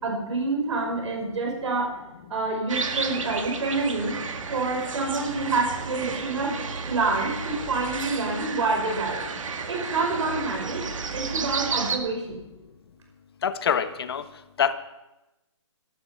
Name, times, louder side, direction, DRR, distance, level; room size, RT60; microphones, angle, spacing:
voice 1, 0.0-2.0 2.3-4.1 4.5-6.6 6.9-9.2 9.7-10.9 11.1-12.4, right 3 dB, 70° right, 1 dB, 5.4 m, -27 dB
sound 1, 2.7-12.0, right 5 dB, 85° right, 1.9 m, -32 dB
voice 2, 13.4-14.2 14.6-14.7, left 7 dB, 50° left, 11 dB, 1.2 m, -24 dB
16.0 x 12.5 x 5.8 m, 0.97 s
hypercardioid pair, 170°, 16 cm